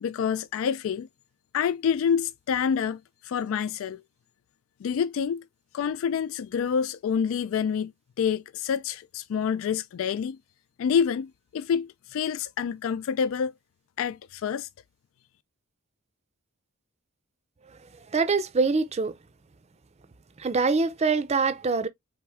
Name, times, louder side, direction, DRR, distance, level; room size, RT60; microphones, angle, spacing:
voice 1, 0.0-1.1 1.5-4.0 4.8-5.4 5.7-7.9 8.2-10.4 10.8-13.5 14.0-14.7, left 7 dB, 65° left, 0.3 m, -27 dB
voice 2, 18.1-19.1 20.4-21.9, right 4 dB, 30° right, 0.5 m, -24 dB
4.4 x 3.4 x 3.5 m
head